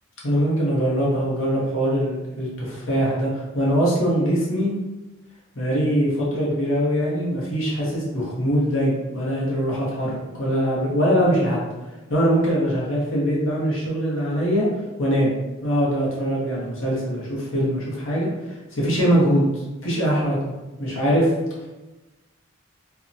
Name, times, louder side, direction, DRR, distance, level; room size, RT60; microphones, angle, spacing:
voice 1, 0.2-4.7 5.5-11.6 12.1-14.7 15.0-15.3 15.6-20.5 20.8-21.3, equal, 70° left, -5 dB, 0.9 m, -22 dB
2.7 x 2.2 x 2.6 m, 1.1 s
head